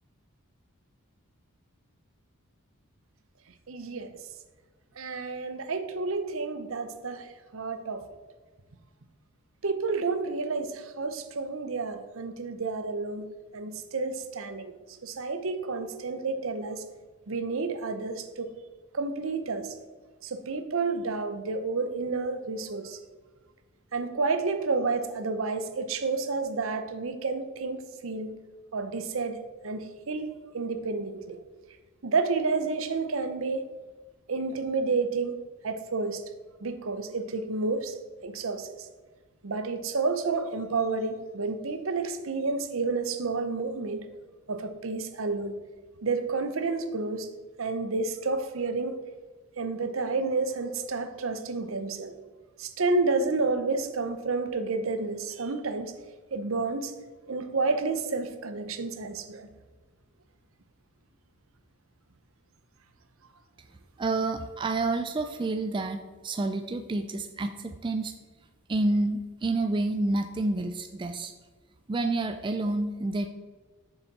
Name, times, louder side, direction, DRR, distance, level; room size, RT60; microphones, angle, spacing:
voice 1, 3.7-4.1 5.0-8.0 9.6-14.7 15.0-16.8 17.3-18.5 18.9-19.8 20.2-23.0 23.9-28.4 28.7-31.4 32.0-33.6 34.3-36.2 36.6-37.9 38.2-38.7 39.4-44.1 44.5-45.6 46.0-47.3 47.6-48.9 49.6-52.1 52.6-56.0 56.3-56.9 57.3-59.5, right 3 dB, 65° right, 9 dB, 0.7 m, -30 dB
voice 2, 64.0-68.1 68.7-71.3 71.9-73.3, right 2 dB, 20° right, 7 dB, 0.3 m, -29 dB
6.9 x 6.8 x 4.1 m, 1.3 s
head